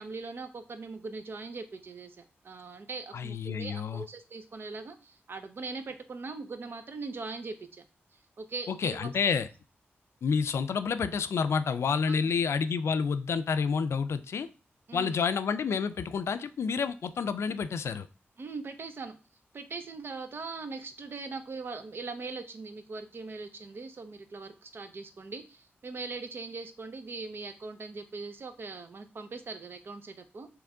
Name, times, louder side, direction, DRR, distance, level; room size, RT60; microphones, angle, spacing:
voice 1, 0.0-2.2 2.4-7.8 8.4-9.3 12.1-12.2 14.9-15.2 18.4-19.2 19.5-30.5, right 3 dB, 55° right, 9 dB, 0.5 m, -40 dB
voice 2, 3.1-4.0 8.7-9.5 10.2-14.5 14.9-18.1, left 6 dB, 75° left, 12 dB, 0.3 m, -29 dB
3.4 x 3.0 x 3.7 m, 0.33 s
wide cardioid pair, 90°, 5 cm